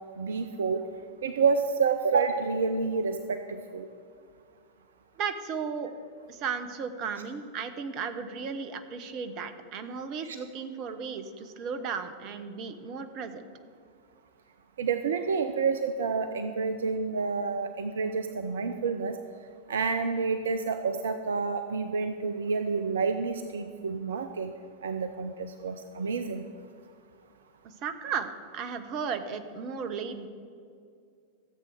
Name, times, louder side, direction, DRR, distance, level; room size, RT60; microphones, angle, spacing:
voice 1, 0.2-0.8 1.2-3.9 10.3-10.4 14.8-19.1 19.7-24.5 24.8-26.5, right 5 dB, 65° right, 9 dB, 0.6 m, -29 dB
voice 2, 5.2-5.9 6.3-13.5 27.6-30.3, right 6 dB, 40° right, 10 dB, 0.9 m, -35 dB
14.5 x 7.6 x 6.6 m, 2.4 s
figure-of-eight pair, 90°, 0 cm